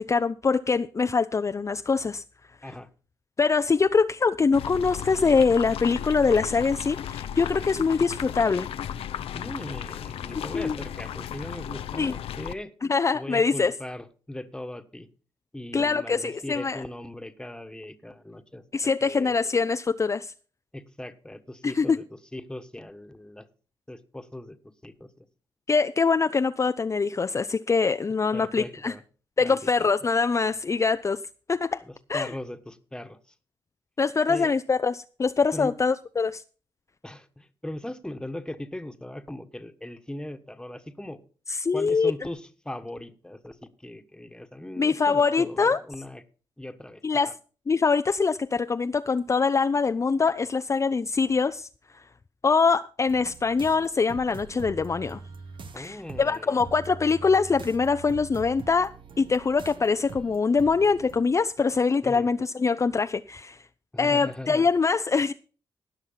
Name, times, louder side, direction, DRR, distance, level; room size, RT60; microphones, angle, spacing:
voice 1, 0.0-2.2 2.6-2.7 3.4-8.7 10.5-10.8 12.0-12.1 12.9-13.7 15.7-16.8 18.7-20.3 21.6-22.0 25.7-28.9 29.4-31.2 31.5-31.8 32.1-32.3 34.0-36.4 41.5-42.1 44.8-45.8 47.0-47.3 47.7-51.7 51.9-52.0 52.4-55.2 55.8-58.9 59.2-63.6 64.0-65.3, left 4 dB, 30° left, 0.5 m, -24 dB
sound 1, 4.5-12.5, left 9 dB, 85° left, 0.5 m, -35 dB
voice 2, 9.3-12.7 13.1-15.1 15.5-19.4 20.7-22.0 22.3-23.4 23.9-24.6 24.8-25.2 28.3-29.0 29.4-29.9 31.8-33.2 34.3-34.5 35.5-35.7 37.0-41.2 41.7-46.2 46.6-47.3 55.7-56.6 62.0-62.3 63.9-64.6, left 1 dB, 10° left, 1.3 m, -39 dB
sound 2, 53.1-61.2, right 4 dB, 60° right, 1.2 m, -43 dB
17.5 x 6.0 x 5.7 m
cardioid pair, 75°, 10 cm